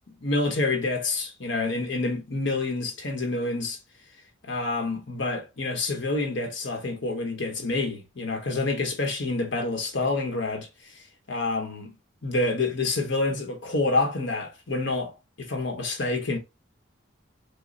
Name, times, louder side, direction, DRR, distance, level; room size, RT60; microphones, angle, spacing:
voice 1, 0.2-3.8 4.4-10.7 11.3-11.9 12.2-15.1 15.4-16.4, left 3 dB, 55° left, 1.1 m, -27 dB
5.1 x 2.2 x 4.0 m
head